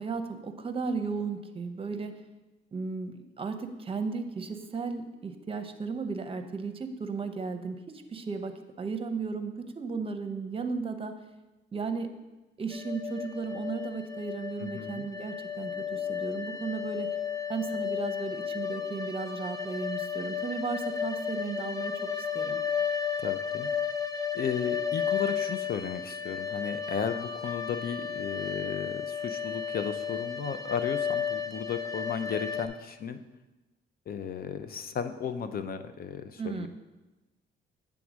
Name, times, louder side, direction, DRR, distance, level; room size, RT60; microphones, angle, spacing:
voice 1, 0.0-2.1 2.7-7.8 8.1-11.1 11.7-12.1 12.6-17.1 17.5-22.6 36.4-36.7, right 4 dB, 30° right, 8 dB, 0.7 m, -35 dB
sound 1, 12.7-32.7, left 7 dB, 15° left, 0.8 m, -33 dB
voice 2, 14.6-15.1 23.2-23.7 24.3-33.2 34.1-36.7, left 7 dB, 50° left, 10 dB, 0.6 m, -35 dB
8.4 x 3.6 x 6.2 m, 1.1 s
cardioid pair, 90°, 20 cm